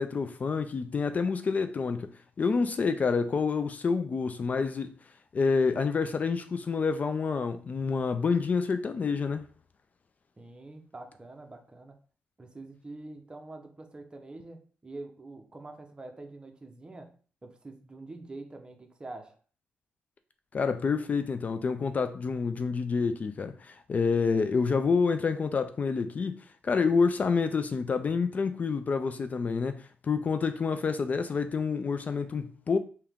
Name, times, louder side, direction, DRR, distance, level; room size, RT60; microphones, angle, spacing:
voice 1, 0.0-4.9 5.3-9.5 20.5-26.4 26.6-32.8, left 5 dB, 40° left, 0.3 m, -28 dB
voice 2, 10.4-12.0 12.4-17.2 17.4-19.4, right 2 dB, 25° right, 0.8 m, -45 dB
3.5 x 2.8 x 3.5 m
cardioid pair, 90°, 4 cm